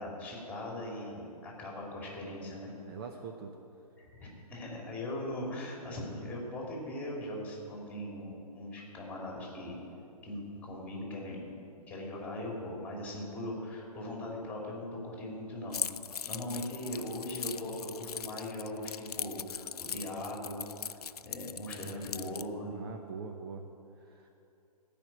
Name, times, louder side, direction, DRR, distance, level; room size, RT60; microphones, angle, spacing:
voice 1, 0.0-2.7 4.0-9.8 10.2-11.6 11.9-15.8 16.2-20.9 21.2-22.8, left 1 dB, 5° left, -2 dB, 2.5 m, -40 dB
voice 2, 2.7-3.6 22.7-23.7 24.0-24.3, right 5 dB, 35° right, 4 dB, 0.7 m, -43 dB
Keys jangling, 15.7-22.5, left 8 dB, 70° left, 0.4 m, -40 dB
15.0 x 5.1 x 8.6 m, 2.8 s
figure-of-eight pair, 130°, 20 cm